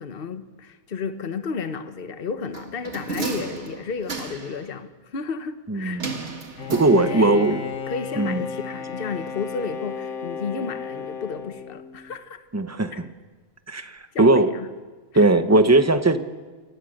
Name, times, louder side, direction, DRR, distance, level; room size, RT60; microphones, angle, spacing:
voice 1, 0.0-6.0 6.9-7.5 7.9-12.4 12.9-13.0 14.1-14.7 15.1-15.3, left 5 dB, 45° left, 1.3 m, -32 dB
sound 1, 2.5-4.6 6.0-7.4 7.7-7.8, right 4 dB, 60° right, 2.2 m, -33 dB
voice 2, 5.7-6.1 6.7-7.6 8.2-8.4 12.5-13.1 13.7-14.5 15.1-16.2, right 2 dB, 15° right, 0.9 m, -19 dB
Bowed string instrument, 6.6-12.2, left 6 dB, 65° left, 1.6 m, -34 dB
28.0 x 18.5 x 6.6 m
omnidirectional pair, 1.4 m